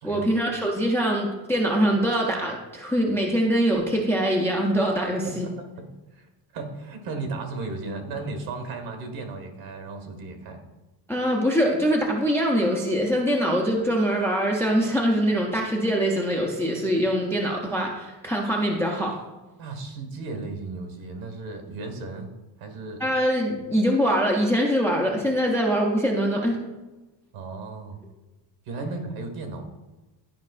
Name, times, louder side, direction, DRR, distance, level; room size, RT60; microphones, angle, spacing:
voice 1, 0.0-5.5 11.1-19.2 23.0-26.6, equal, 5° left, -1 dB, 0.3 m, -23 dB
voice 2, 5.2-5.6 6.1-10.6 19.6-22.3 22.6-23.0 27.3-28.0 28.6-29.6, right 3 dB, 80° right, 4 dB, 1.7 m, -35 dB
11.5 x 5.1 x 2.4 m, 1.1 s
cardioid pair, 175°, 47 cm